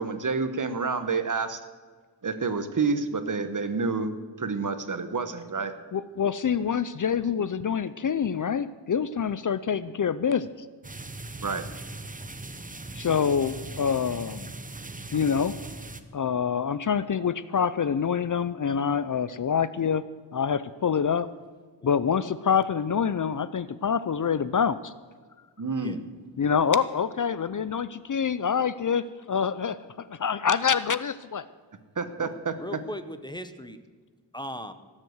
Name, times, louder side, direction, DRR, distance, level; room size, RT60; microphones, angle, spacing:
voice 1, 0.0-1.6 2.2-5.7 11.4-11.7 25.6-26.1 32.0-32.5, right 4 dB, 45° right, 10 dB, 1.1 m, -29 dB
voice 2, 5.9-10.5 12.9-14.5 15.1-15.5 16.1-20.0 20.3-21.3 21.8-24.9 26.4-29.8 30.1-31.4, left 7 dB, 50° left, 15 dB, 0.5 m, -26 dB
sound 1, 10.8-16.0, right 2 dB, 20° right, 0.8 m, -40 dB
voice 3, 32.2-33.8 34.3-34.7, left 1 dB, 10° left, 10 dB, 0.8 m, -38 dB
18.0 x 7.5 x 8.0 m, 1.5 s
wide cardioid pair, 105°, 42 cm